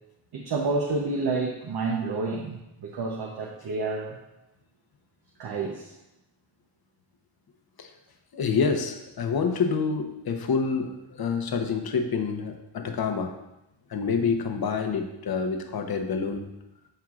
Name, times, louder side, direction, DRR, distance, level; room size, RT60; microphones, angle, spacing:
voice 1, 0.3-4.2 5.4-5.9, right 3 dB, 50° right, 0 dB, 0.9 m, -29 dB
voice 2, 8.3-13.3 13.9-16.5, left 5 dB, 50° left, 5 dB, 1.0 m, -27 dB
12.5 x 4.6 x 2.5 m, 0.91 s
cardioid pair, 100°, 48 cm